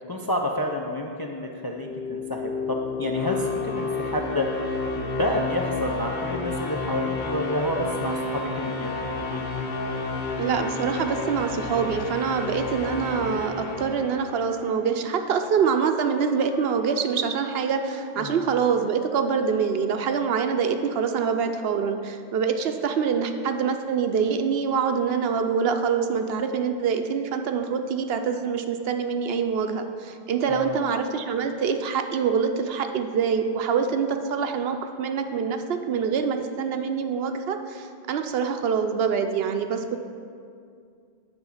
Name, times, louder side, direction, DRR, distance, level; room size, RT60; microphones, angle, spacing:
voice 1, 0.1-9.4 18.2-18.4 30.5-30.8, left 1 dB, 35° left, 1 dB, 0.3 m, -29 dB
sound 1, 1.6-14.7, left 3 dB, 50° left, 0.8 m, -31 dB
voice 2, 10.4-40.0, right 6 dB, 75° right, 7 dB, 0.8 m, -25 dB
Wind instrument woodwind instrument, 13.5-20.5, left 2 dB, 75° left, 1.9 m, -46 dB
9.7 x 3.6 x 7.1 m, 2.3 s
omnidirectional pair, 1.1 m